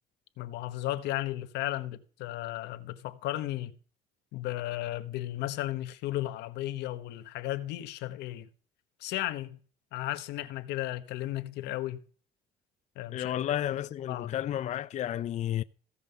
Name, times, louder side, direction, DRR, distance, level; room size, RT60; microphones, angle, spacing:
voice 1, 0.4-3.7 4.3-8.5 9.0-9.6 9.9-12.0 13.0-13.3 13.7-13.8 14.1-14.3, left 15 dB, 85° left, 1.1 m, -34 dB
voice 2, 13.1-15.6, left 11 dB, 45° left, 0.4 m, -32 dB
15.5 x 5.5 x 6.7 m
cardioid pair, 110°, 17 cm